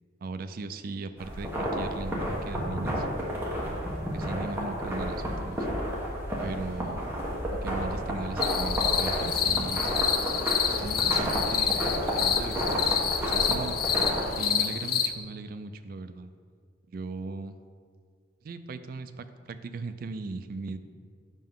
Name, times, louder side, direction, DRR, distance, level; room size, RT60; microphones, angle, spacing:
voice 1, 0.2-3.1 4.1-5.7 6.4-7.0 7.5-9.8 10.2-10.4 10.8-11.9 12.1-13.8 14.4-16.3 16.9-17.6 18.4-20.8, right 3 dB, 50° right, 10 dB, 0.3 m, -38 dB
sound 1, 1.2-14.2, equal, 10° right, 1.1 m, -31 dB
sound 2, 8.4-15.1, left 8 dB, 50° left, 0.4 m, -28 dB
7.4 x 5.6 x 3.6 m, 2.2 s
head